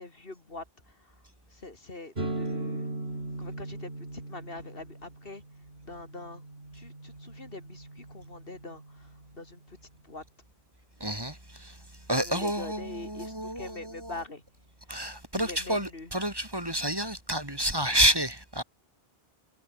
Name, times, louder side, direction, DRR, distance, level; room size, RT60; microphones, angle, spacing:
voice 1, 0.0-2.9 3.4-5.4 5.8-6.5 6.7-10.2 12.1-14.4 15.3-16.1 17.8-17.9, left 2 dB, 65° left, 3.1 m, -44 dB
sound 1, 2.2-9.8, right 2 dB, 80° right, 4.8 m, -39 dB
voice 2, 11.0-11.8 12.1-14.2 14.9-18.6, right 1 dB, 25° right, 3.0 m, -29 dB
omnidirectional pair, 1.0 m